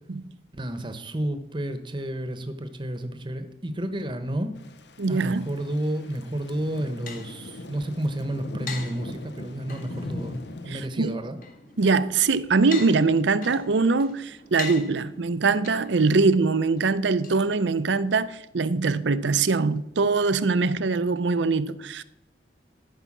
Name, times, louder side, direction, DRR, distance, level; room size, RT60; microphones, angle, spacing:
voice 1, 0.5-4.5 5.1-10.4 10.6-11.4, right 1 dB, 25° right, 0.9 m, -31 dB
Thunder / Rain, 4.6-10.9, left 1 dB, 75° left, 0.9 m, -40 dB
voice 2, 5.0-5.5 10.7-11.2 11.8-22.0, right 4 dB, 85° right, 0.6 m, -23 dB
sound 1, 6.5-18.1, left 5 dB, 45° left, 1.7 m, -43 dB
13.5 x 5.6 x 7.2 m
head